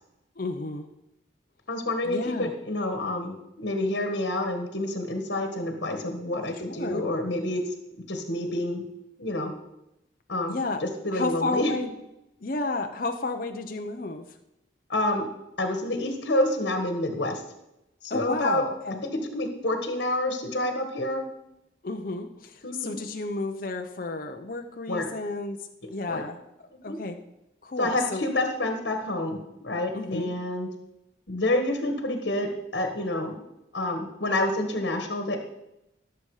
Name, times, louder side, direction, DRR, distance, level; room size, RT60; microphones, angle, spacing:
voice 1, 0.4-0.9 2.0-2.5 6.6-7.0 10.5-10.8 11.1-11.9 12.4-14.2 18.1-19.0 21.8-25.6 25.9-26.4 26.8-27.2 27.6-28.3 29.9-30.3, left 3 dB, 45° left, 5 dB, 0.7 m, -31 dB
voice 2, 1.7-7.6 8.1-8.8 9.2-9.5 10.3-10.6 10.8-11.7 14.9-15.3 15.6-17.4 18.0-18.6 19.3-21.2 22.6-23.0 24.9-25.1 26.1-26.2 26.7-27.0 27.8-30.7 31.3-33.4 33.7-35.4, left 1 dB, 65° left, 5 dB, 1.6 m, -28 dB
17.0 x 6.9 x 4.9 m, 0.90 s
head